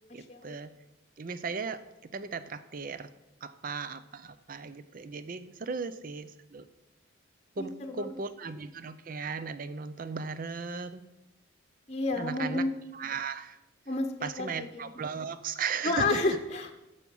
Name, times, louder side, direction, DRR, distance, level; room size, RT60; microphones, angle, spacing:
voice 1, 0.1-0.7 1.2-1.8 2.1-3.1 3.4-6.6 7.6-11.0 12.2-12.6 12.9-13.6 14.2-16.4, right 5 dB, 40° right, 13 dB, 0.5 m, -36 dB
voice 2, 7.6-8.1 11.9-12.7 13.9-14.8 15.8-16.7, left 2 dB, 30° left, 5 dB, 0.9 m, -30 dB
11.0 x 7.0 x 5.4 m, 0.97 s
head